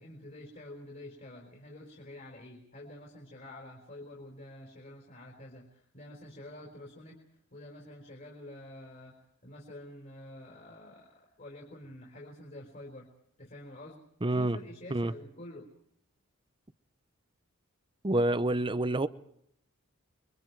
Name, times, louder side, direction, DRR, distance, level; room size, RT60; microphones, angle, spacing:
voice 1, 0.0-7.2 7.5-13.1 13.4-14.0 14.3-15.7, left 1 dB, 40° left, 4.2 m, -48 dB
voice 2, 14.2-14.6 14.9-15.1 18.0-19.1, right 1 dB, 25° right, 0.8 m, -27 dB
30.0 x 23.0 x 4.7 m
head